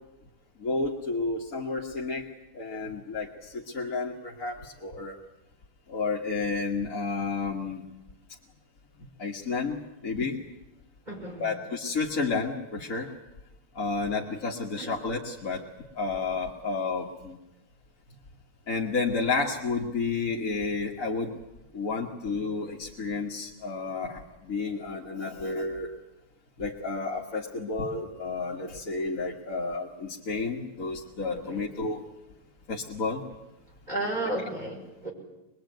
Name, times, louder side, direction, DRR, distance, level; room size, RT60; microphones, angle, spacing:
voice 1, 0.6-2.3 2.5-5.2 5.9-7.8 9.2-9.8 10.0-10.4 11.4-13.1 13.7-15.6 16.0-17.4 18.7-21.4 21.7-25.9 26.6-32.0 32.7-33.2, left 4 dB, 60° left, -2 dB, 2.2 m, -31 dB
voice 2, 11.1-11.5 14.8-14.9 31.3-31.6 33.9-35.1, right 1 dB, 25° right, 0 dB, 5.7 m, -33 dB
24.5 x 21.0 x 9.3 m, 0.96 s
omnidirectional pair, 1.6 m